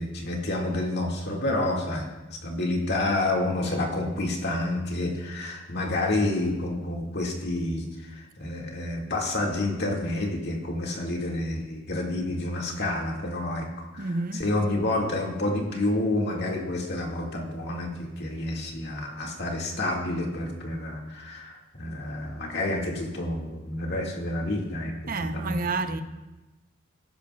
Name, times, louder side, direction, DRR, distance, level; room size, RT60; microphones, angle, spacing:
voice 1, 0.0-2.0 2.4-14.1 14.4-25.6 25.9-26.0, left 2 dB, 60° left, 2.0 m, -29 dB
voice 2, 14.0-14.4 25.1-26.0, right 3 dB, 45° right, 0.7 m, -29 dB
19.0 x 10.5 x 2.3 m
head